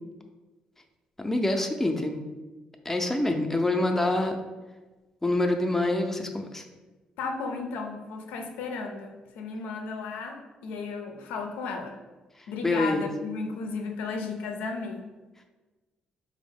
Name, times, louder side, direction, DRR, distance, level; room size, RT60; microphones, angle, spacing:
voice 1, 1.2-2.2 2.9-4.4 5.2-6.6 12.6-13.0, left 2 dB, 10° left, 4 dB, 0.5 m, -26 dB
voice 2, 7.2-12.0 12.5-15.1, left 4 dB, 85° left, 4 dB, 0.4 m, -34 dB
4.2 x 2.1 x 3.5 m, 1.2 s
supercardioid pair, 65°, 3 cm